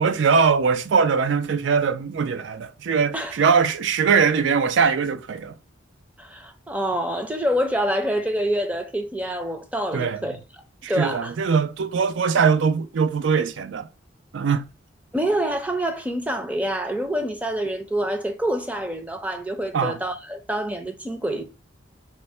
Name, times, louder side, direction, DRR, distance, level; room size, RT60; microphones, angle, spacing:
voice 1, 0.0-5.5 9.9-10.2 10.8-13.9 14.3-14.6 19.7-20.0, right 5 dB, 70° right, 0.4 m, -21 dB
voice 2, 6.2-10.4 10.9-11.3 15.1-21.4, right 1 dB, 5° right, 0.5 m, -26 dB
4.3 x 2.1 x 4.2 m
head